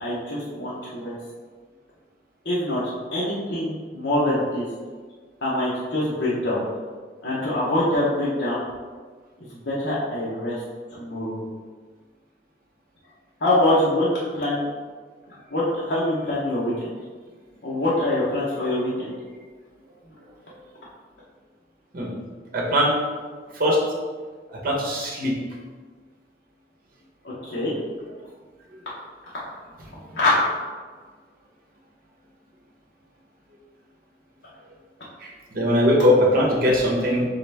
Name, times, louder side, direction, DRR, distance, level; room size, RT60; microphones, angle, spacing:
voice 1, 0.0-1.1 2.4-2.8 3.1-4.6 5.4-6.6 7.2-8.6 9.5-10.6 10.9-11.4 13.4-14.7 15.3-16.9 17.6-19.1 27.2-27.8 30.2-30.4, left 1 dB, 70° left, -8 dB, 0.9 m, -24 dB
voice 2, 22.5-22.9 23.5-23.8 24.5-25.3 35.2-37.3, equal, 55° right, -2 dB, 1.0 m, -20 dB
4.1 x 3.8 x 3.4 m, 1.5 s
head